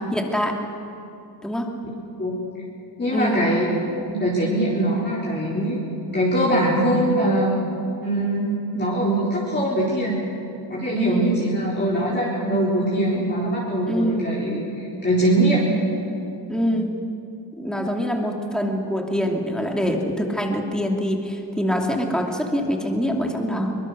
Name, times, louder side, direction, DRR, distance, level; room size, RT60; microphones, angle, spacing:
voice 1, 0.1-0.6 1.4-1.7 3.1-3.4 10.9-11.4 13.9-14.2 16.5-17.0 17.6-23.8, equal, ahead, 1 dB, 2.5 m, -24 dB
voice 2, 3.0-3.7 4.1-5.8 6.1-7.5 8.0-10.2 10.7-15.7, right 1 dB, 25° left, -7 dB, 4.3 m, -22 dB
23.0 x 20.5 x 6.4 m, 2.7 s
cardioid pair, 95°, 45 cm